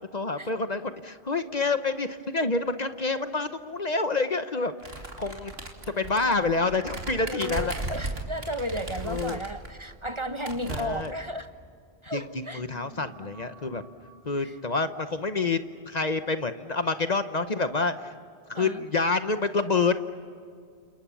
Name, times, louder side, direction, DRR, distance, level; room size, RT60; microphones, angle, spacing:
voice 1, 0.0-5.5 5.9-7.7 9.0-9.4 10.7-11.1 12.1-13.8 14.2-15.6 15.9-18.1 18.5-20.1, left 3 dB, 40° left, 10 dB, 1.0 m, -28 dB
sound 1, 4.8-9.7 10.0-10.1 10.4-11.2, right 2 dB, 65° right, 3.1 m, -36 dB
voice 2, 7.2-11.5 12.0-12.6 14.4-14.5 18.5-18.8, equal, 30° right, 9 dB, 1.1 m, -34 dB
sound 2, 12.4-17.1, right 1 dB, 65° left, 5.1 m, -55 dB
29.5 x 28.0 x 7.1 m, 2.3 s
omnidirectional pair, 1.1 m